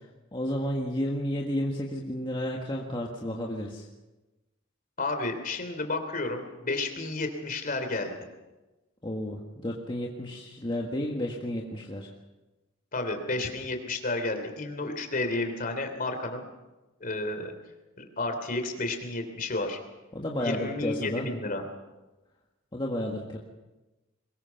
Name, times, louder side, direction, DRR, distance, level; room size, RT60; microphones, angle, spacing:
voice 1, 0.3-3.9 9.0-12.1 20.1-21.3 22.7-23.4, left 1 dB, 25° left, -1 dB, 1.7 m, -32 dB
voice 2, 5.0-8.2 12.9-16.5 17.0-17.5 18.0-19.8 20.4-21.6, left 2 dB, 45° left, 6 dB, 3.2 m, -31 dB
22.5 x 20.5 x 5.9 m, 1.1 s
head